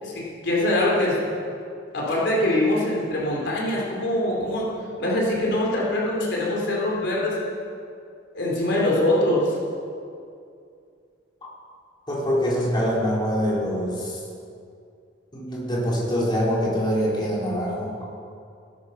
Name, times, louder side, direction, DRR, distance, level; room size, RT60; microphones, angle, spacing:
voice 1, 0.0-1.2 1.9-4.7 5.0-7.4 8.3-9.5, left 1 dB, 65° left, -4 dB, 4.5 m, -23 dB
voice 2, 12.1-14.2 15.3-17.9, equal, 25° left, -6 dB, 4.1 m, -24 dB
16.5 x 13.0 x 6.0 m, 2.4 s
head